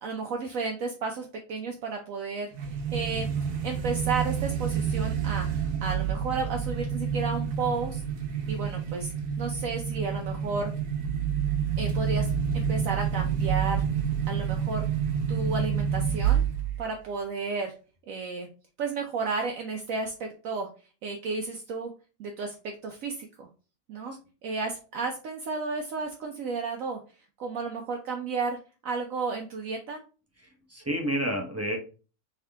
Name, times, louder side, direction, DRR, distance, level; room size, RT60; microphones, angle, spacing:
voice 1, 0.0-2.5 2.9-3.3 3.6-5.5 5.8-8.0 8.5-10.7 11.8-13.8 14.3-14.9 15.3-16.4 16.8-17.7 18.1-18.5 18.8-20.7 21.0-21.9 22.2-22.5 22.8-23.5 23.9-24.2 24.4-27.0 27.4-28.6 28.8-30.0, right 4 dB, 70° right, 3 dB, 1.0 m, -32 dB
sound 1, 2.5-16.8, right 7 dB, 90° right, 1.4 m, -28 dB
voice 2, 30.4-31.8, right 1 dB, 15° right, 1 dB, 0.6 m, -30 dB
3.6 x 3.6 x 3.3 m, 0.35 s
omnidirectional pair, 1.6 m